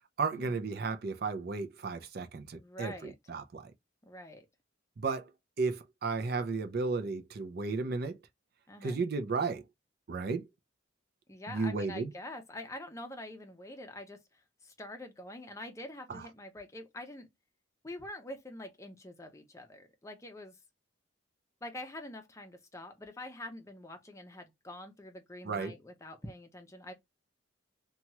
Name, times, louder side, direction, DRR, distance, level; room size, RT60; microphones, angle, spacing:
voice 1, 0.2-3.7 5.0-5.3 5.6-8.2 8.8-9.6 10.1-10.4 11.5-12.1 16.1-16.2 25.4-25.7, right 4 dB, 50° right, 0.5 m, -34 dB
voice 2, 2.6-3.1 4.0-4.5 8.7-9.0 11.3-17.3 17.8-20.6 21.6-26.9, left 1 dB, 15° left, 0.6 m, -45 dB
2.9 x 2.3 x 2.8 m
head